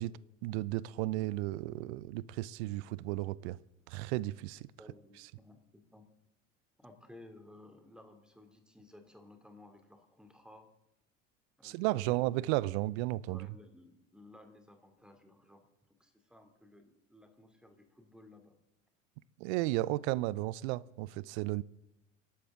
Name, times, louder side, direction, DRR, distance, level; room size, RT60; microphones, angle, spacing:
voice 1, 0.0-3.6 3.9-4.7 11.6-13.5 19.4-21.6, right 17 dB, 55° right, 0.7 m, -34 dB
voice 2, 4.8-6.1 6.8-10.7 11.6-12.3 13.3-15.7 16.0-18.6, left 1 dB, ahead, 2.7 m, -57 dB
26.5 x 12.0 x 3.7 m
figure-of-eight pair, 75°, 39 cm